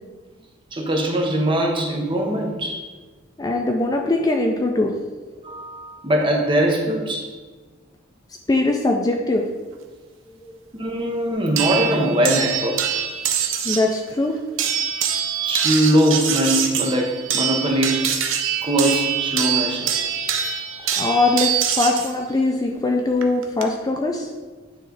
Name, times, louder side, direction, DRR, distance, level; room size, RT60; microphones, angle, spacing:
voice 1, 0.7-2.9 5.4-7.4 10.7-13.0 15.4-18.1 18.6-19.9 22.7-22.8, right 1 dB, 25° right, 1 dB, 0.9 m, -21 dB
voice 2, 3.4-4.9 8.5-9.5 10.4-10.5 13.6-14.4 21.0-24.3, left 2 dB, 20° left, 2 dB, 0.4 m, -21 dB
sound 1, 11.6-13.9 14.6-22.1 23.2-23.6, right 8 dB, 75° right, 0.6 m, -24 dB
9.1 x 3.2 x 3.9 m, 1.3 s
head